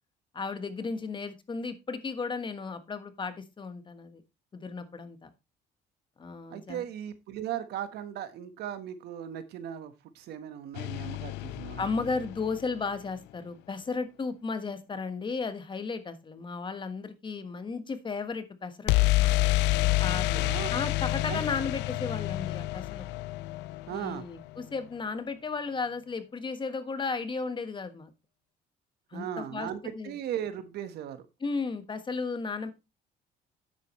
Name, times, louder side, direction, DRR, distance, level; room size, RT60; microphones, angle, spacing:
voice 1, 0.3-4.2 4.5-5.3 6.2-6.8 11.8-19.3 20.0-20.3 20.7-23.1 23.9-28.1 29.1-29.7 29.9-30.1 31.4-32.7, left 4 dB, 30° left, 10 dB, 1.3 m, -34 dB
voice 2, 6.5-12.2 20.1-20.8 21.3-21.4 23.9-24.2 29.1-31.3, right 10 dB, 75° right, 11 dB, 1.3 m, -38 dB
sound 1, 10.8-12.8 18.9-24.7, left 18 dB, 90° left, 0.4 m, -28 dB
9.7 x 8.3 x 3.1 m, 0.25 s
cardioid pair, 110°, 17 cm